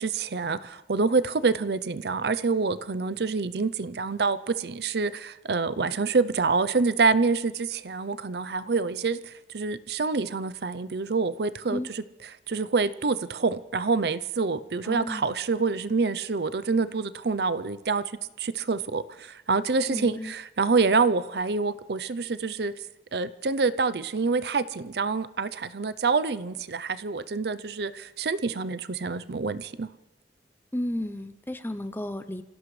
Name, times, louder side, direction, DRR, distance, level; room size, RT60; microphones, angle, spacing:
voice 1, 0.0-18.0 18.4-22.7 23.1-29.9, right 4 dB, 65° right, 14 dB, 0.6 m, -27 dB
voice 2, 14.9-15.3 19.9-20.3 30.7-32.4, left 1 dB, 10° left, 10 dB, 0.6 m, -33 dB
27.0 x 16.5 x 3.3 m, 1.0 s
head